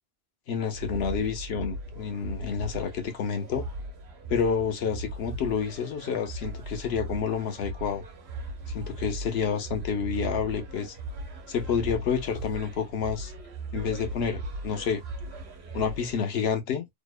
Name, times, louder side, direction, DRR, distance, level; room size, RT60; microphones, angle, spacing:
voice 1, 0.5-3.7 4.3-8.0 8.7-11.0 11.5-13.3 13.7-15.0 15.7-16.9, left 6 dB, 80° left, 0.9 m, -29 dB
sound 1, 0.7-16.2, right 2 dB, 90° right, 1.0 m, -38 dB
2.8 x 2.1 x 2.2 m
omnidirectional pair, 1.0 m